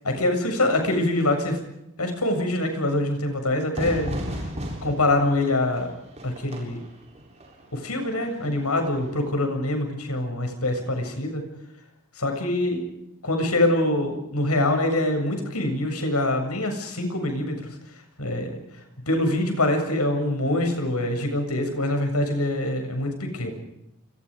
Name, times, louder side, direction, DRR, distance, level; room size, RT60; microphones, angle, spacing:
voice 1, 0.0-1.6 2.0-4.5 4.8-5.9 6.2-6.8 7.7-11.4 12.2-12.9 13.2-23.5, left 1 dB, 85° left, 5 dB, 7.3 m, -25 dB
Fire / Fireworks, 3.7-9.3, equal, 30° right, 7.5 m, -36 dB
29.5 x 26.5 x 5.1 m, 0.84 s
head